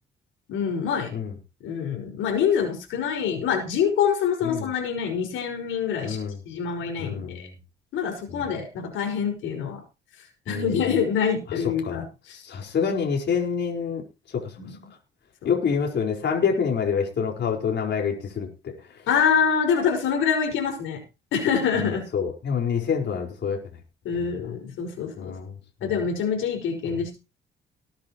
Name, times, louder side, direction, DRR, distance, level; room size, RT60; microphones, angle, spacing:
voice 1, 0.5-1.1 1.6-7.5 7.9-9.8 10.5-12.4 12.8-12.9 14.6-14.9 15.4-15.5 19.1-21.0 21.3-22.1 24.0-25.4 25.8-27.2, left 7 dB, 90° left, 3 dB, 5.6 m, -25 dB
voice 2, 6.0-6.4 7.0-7.4 8.3-8.4 10.5-10.8 11.8-12.0 12.4-14.0 14.3-14.5 15.4-18.7 21.8-23.6 25.2-25.5 25.8-25.9, left 6 dB, 60° left, 1 dB, 4.9 m, -26 dB
20.0 x 10.5 x 3.1 m, 0.29 s
cardioid pair, 90°, 20 cm